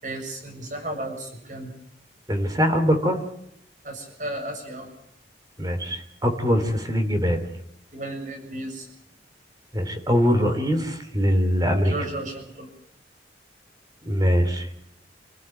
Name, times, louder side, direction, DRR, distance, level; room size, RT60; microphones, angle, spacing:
voice 1, 0.0-1.7 3.8-4.9 7.9-8.9 11.8-12.7, right 1 dB, 45° right, 5 dB, 7.2 m, -34 dB
voice 2, 2.3-3.2 5.6-7.4 9.7-11.9 14.0-14.7, equal, 20° right, 7 dB, 3.1 m, -22 dB
28.0 x 15.5 x 9.1 m, 0.75 s
head